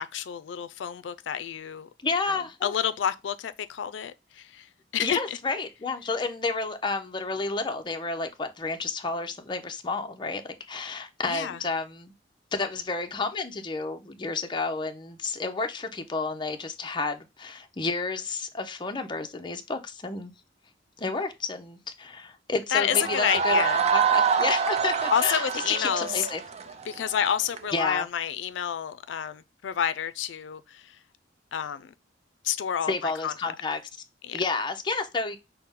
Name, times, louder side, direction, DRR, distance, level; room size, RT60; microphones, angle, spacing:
voice 1, 0.0-1.9 2.3-4.7 4.9-5.4 11.3-11.6 22.7-23.8 25.1-26.3 26.9-31.0 31.5-31.9 32.4-33.5 34.2-34.4, left 9 dB, 85° left, 0.4 m, -29 dB
voice 2, 2.0-2.7 5.0-12.1 12.5-20.3 21.0-26.4 27.7-28.1 32.9-33.8 34.3-35.4, left 3 dB, 25° left, 0.6 m, -31 dB
sound 1, 22.9-27.6, right 6 dB, 35° right, 0.5 m, -26 dB
5.7 x 2.1 x 3.6 m
head